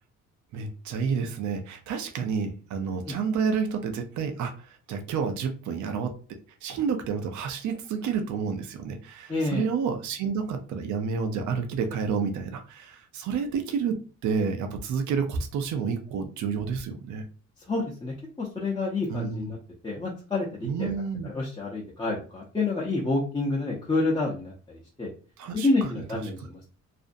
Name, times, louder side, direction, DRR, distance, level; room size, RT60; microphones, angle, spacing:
voice 1, 0.5-6.1 6.6-17.2 19.1-19.5 20.6-21.3 25.4-25.7 25.9-26.3, right 6 dB, 70° right, 6 dB, 0.5 m, -30 dB
voice 2, 9.3-9.6 17.7-19.6 19.8-20.9 21.2-25.1 25.5-26.7, left 3 dB, 15° left, -4 dB, 0.6 m, -28 dB
2.5 x 2.0 x 2.5 m, 0.36 s
cardioid pair, 90°, 30 cm